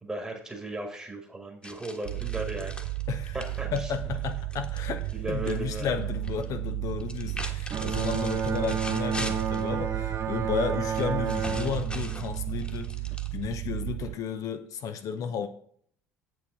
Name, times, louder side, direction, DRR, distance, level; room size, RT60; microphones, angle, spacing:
voice 1, 0.0-2.7 3.3-4.1 5.1-5.9 14.0-14.1, right 2 dB, 15° right, 2 dB, 1.7 m, -36 dB
sound 1, 1.6-5.6 5.8-6.4 7.0-9.7 10.9-13.6, left 1 dB, 10° left, 1.4 m, -40 dB
sound 2, 2.0-14.1, right 19 dB, 50° right, 0.4 m, -34 dB
voice 2, 3.7-12.9 13.3-15.5, left 7 dB, 45° left, 8 dB, 0.7 m, -33 dB
Bowed string instrument, 7.7-13.1, right 7 dB, 35° right, 0.9 m, -31 dB
8.1 x 7.8 x 3.7 m, 0.62 s
figure-of-eight pair, 60°, 8 cm